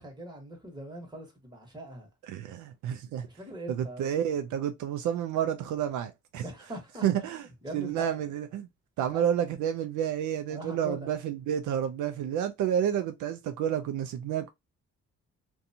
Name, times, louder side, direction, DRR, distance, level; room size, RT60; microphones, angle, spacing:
voice 1, 0.0-2.1 3.3-4.1 6.4-7.3 7.6-8.1 9.1-9.3 10.5-11.1, right 1 dB, 15° right, 1.3 m, -41 dB
voice 2, 2.3-3.3 3.7-6.4 7.0-7.5 7.7-8.7 9.0-14.5, right 9 dB, 75° right, 0.4 m, -30 dB
2.5 x 2.3 x 2.7 m
cardioid pair, 90°, 30 cm